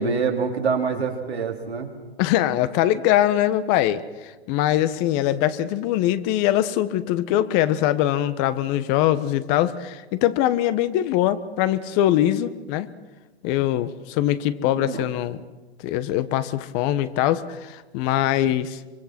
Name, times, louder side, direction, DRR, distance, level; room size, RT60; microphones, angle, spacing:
voice 1, 0.0-1.9 14.8-15.0, right 5 dB, 85° right, 1 dB, 3.7 m, -25 dB
voice 2, 2.2-12.9 13.4-15.4 15.8-18.8, left 12 dB, 40° left, 13 dB, 1.3 m, -22 dB
25.5 x 25.0 x 6.1 m, 1.2 s
hypercardioid pair, 115°, 31 cm